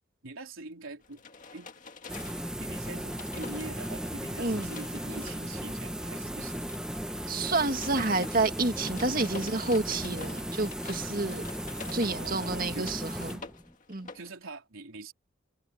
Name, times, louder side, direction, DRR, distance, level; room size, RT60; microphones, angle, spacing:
voice 1, 0.2-1.2 1.5-1.7 2.6-6.6 12.1-12.9 14.1-15.1, right 3 dB, 85° right, 3.4 m, -44 dB
sound 1, 1.0-14.3, left 4 dB, 40° left, 2.0 m, -48 dB
sound 2, 2.1-13.7, equal, 5° right, 1.1 m, -36 dB
voice 2, 7.3-11.4 11.9-13.4 13.9-14.1, right 3 dB, 45° right, 2.1 m, -29 dB
head